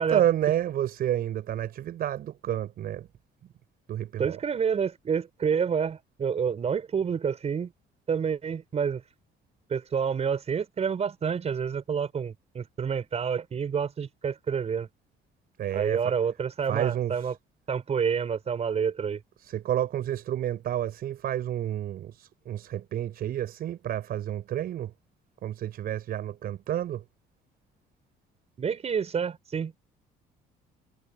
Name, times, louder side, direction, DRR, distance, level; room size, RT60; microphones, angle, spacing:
voice 1, 0.0-3.1 3.9-4.4 15.6-16.2 16.7-17.4 19.4-24.9 25.4-27.0, right 11 dB, 60° right, 5.6 m, -30 dB
voice 2, 4.2-7.7 8.1-9.0 9.7-14.9 15.7-17.3 17.7-19.2 28.6-29.7, right 6 dB, 40° right, 5.7 m, -28 dB
cardioid pair, 110°, 17 cm